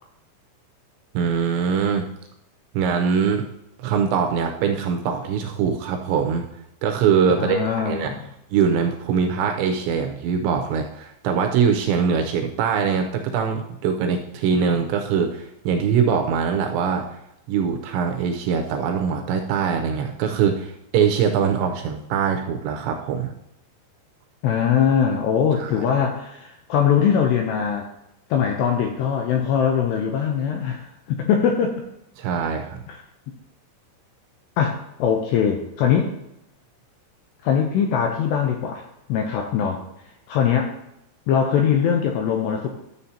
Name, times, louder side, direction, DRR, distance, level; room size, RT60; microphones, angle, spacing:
voice 1, 1.1-2.1 2.7-3.4 3.8-6.5 6.8-8.1 8.5-17.2 17.5-23.3 25.6-25.9 32.2-32.8, right 6 dB, 80° right, 3 dB, 2.7 m, -22 dB
voice 2, 7.4-8.2 24.4-27.9 28.3-31.8 32.9-33.0 34.6-36.1 37.4-38.8 39.1-39.8 40.3-40.7 41.3-42.7, left 7 dB, 85° left, 2 dB, 2.5 m, -21 dB
12.5 x 7.3 x 2.8 m, 0.82 s
omnidirectional pair, 5.6 m